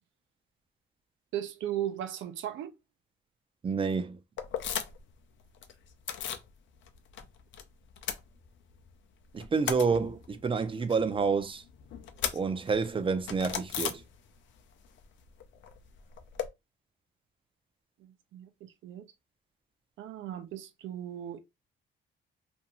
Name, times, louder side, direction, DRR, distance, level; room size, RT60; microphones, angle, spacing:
voice 1, 1.3-2.7 18.0-19.1 20.0-21.4, right 11 dB, 75° right, 0.6 m, -37 dB
voice 2, 3.6-4.2 9.3-11.6 12.3-14.0, right 5 dB, 25° right, 0.5 m, -29 dB
sound 1, 4.4-5.1 5.4-6.5 6.8-7.6 7.9-8.9 9.2-14.6 14.8-16.5, left 8 dB, 70° left, 0.5 m, -38 dB
2.6 x 2.2 x 2.9 m
cardioid pair, 90°, 20 cm